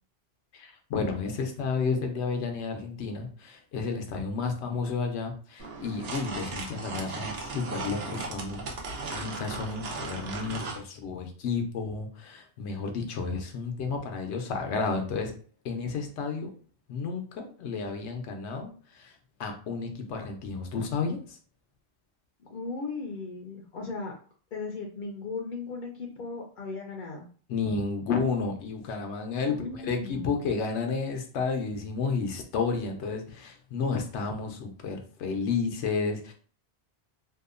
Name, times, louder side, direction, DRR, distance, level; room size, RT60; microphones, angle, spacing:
voice 1, 0.5-15.3 15.6-16.5 16.9-19.1 19.4-21.4 27.5-36.3, left 4 dB, 90° left, 4 dB, 0.9 m, -31 dB
sound 1, 5.6-10.8, right 3 dB, 70° right, 0.8 m, -37 dB
voice 2, 22.5-24.1 24.5-27.2 29.4-30.3, left 3 dB, 60° left, 1 dB, 0.6 m, -37 dB
2.8 x 2.3 x 2.4 m, 0.41 s
omnidirectional pair, 1.1 m